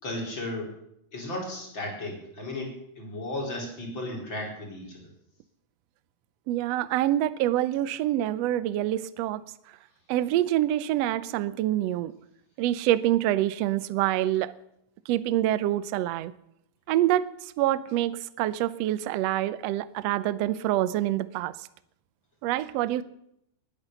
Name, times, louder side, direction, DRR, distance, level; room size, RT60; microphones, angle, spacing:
voice 1, 0.0-0.7 1.1-5.1, left 1 dB, 35° left, -1 dB, 5.0 m, -35 dB
voice 2, 6.5-9.4 10.1-12.1 12.6-14.5 15.1-16.3 16.9-21.5 22.4-23.0, right 13 dB, 90° right, 16 dB, 1.4 m, -26 dB
20.0 x 10.5 x 6.9 m, 0.76 s
omnidirectional pair, 3.8 m